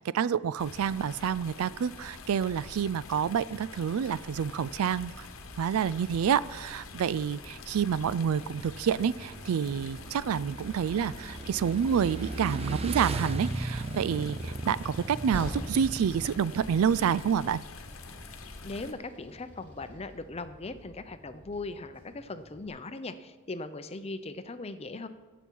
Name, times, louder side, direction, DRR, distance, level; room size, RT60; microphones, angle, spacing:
voice 1, 0.0-5.3 5.6-17.6, right 7 dB, 75° right, 18 dB, 0.3 m, -28 dB
sound 1, 0.6-18.9, left 3 dB, 65° left, 1.1 m, -46 dB
Motorcycle / Engine, 7.8-17.5, right 2 dB, 30° right, 0.7 m, -38 dB
Train, 14.1-22.7, equal, 10° left, 2.9 m, -46 dB
voice 2, 18.6-25.1, left 3 dB, 30° left, 11 dB, 0.6 m, -39 dB
17.0 x 7.1 x 4.7 m, 1.4 s
head